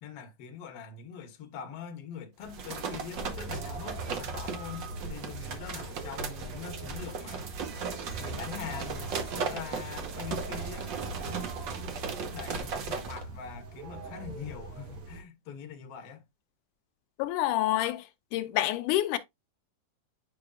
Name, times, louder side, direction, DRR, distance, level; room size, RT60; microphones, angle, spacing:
voice 1, 0.0-7.6 8.2-11.5 12.3-16.2, left 7 dB, 60° left, 1.9 m, -43 dB
sound 1, 2.4-13.2, right 5 dB, 75° right, 1.0 m, -37 dB
sound 2, 3.2-15.2, right 3 dB, 50° right, 2.4 m, -42 dB
voice 2, 17.2-18.0 18.3-19.2, left 14 dB, 90° left, 2.1 m, -27 dB
9.1 x 5.1 x 2.4 m
omnidirectional pair, 3.6 m